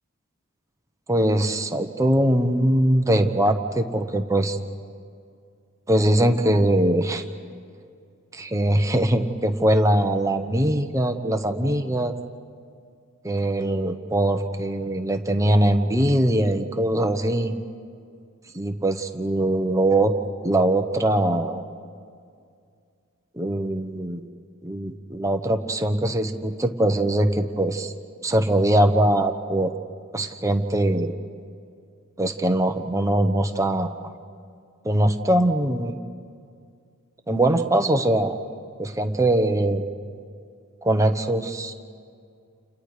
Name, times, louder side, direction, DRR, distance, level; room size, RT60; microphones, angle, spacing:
voice 1, 1.1-4.6 5.9-7.2 8.3-12.1 13.2-17.6 18.5-20.1 20.4-21.6 23.3-24.2 24.6-27.9 28.2-29.7 30.1-31.1 32.2-33.9 34.8-36.0 37.3-38.4 38.8-39.8 40.8-41.9, right 1 dB, 15° right, 6 dB, 1.0 m, -22 dB
30.0 x 29.0 x 5.0 m, 2.3 s
head